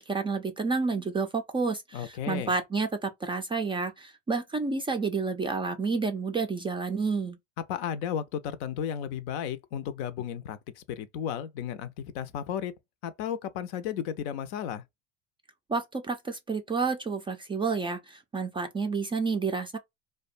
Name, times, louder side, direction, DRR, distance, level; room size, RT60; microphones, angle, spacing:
voice 1, 0.1-7.4 15.7-19.8, right 4 dB, 15° right, 0.3 m, -30 dB
voice 2, 1.9-2.5 7.7-11.9 12.1-12.7 13.0-14.8, left 9 dB, 65° left, 0.6 m, -34 dB
2.5 x 2.2 x 2.4 m
hypercardioid pair, 90°, 36 cm